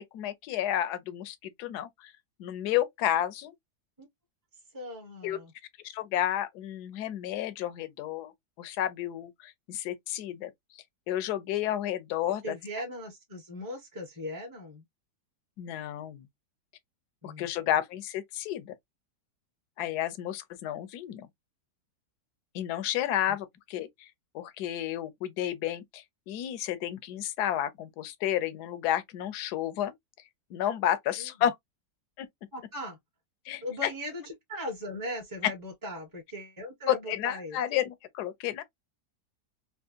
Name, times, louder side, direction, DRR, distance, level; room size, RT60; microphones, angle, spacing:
voice 1, 0.0-2.1 2.4-3.5 5.2-5.4 5.9-8.3 8.6-10.5 11.1-12.5 15.6-16.2 17.2-18.7 19.8-21.3 22.5-24.1 24.3-29.9 30.5-31.6 32.2-32.3 33.5-33.9 36.9-38.6, left 11 dB, 75° left, 1.2 m, -31 dB
voice 2, 4.7-5.5 12.4-14.8 17.2-17.5 31.2-31.3 32.5-33.0 33.6-37.6, left 1 dB, 15° right, 0.9 m, -39 dB
3.4 x 2.8 x 2.7 m
omnidirectional pair, 1.8 m